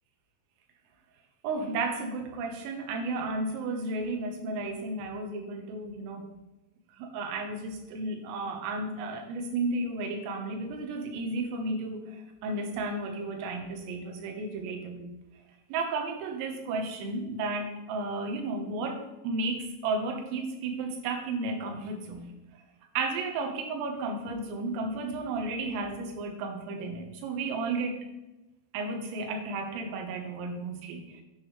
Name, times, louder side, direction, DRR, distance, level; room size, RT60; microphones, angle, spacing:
voice 1, 1.4-6.3 7.0-15.1 15.7-22.3 23.0-28.0 28.7-31.2, right 3 dB, 85° right, 3 dB, 3.8 m, -33 dB
10.5 x 8.4 x 3.3 m, 1.0 s
omnidirectional pair, 5.9 m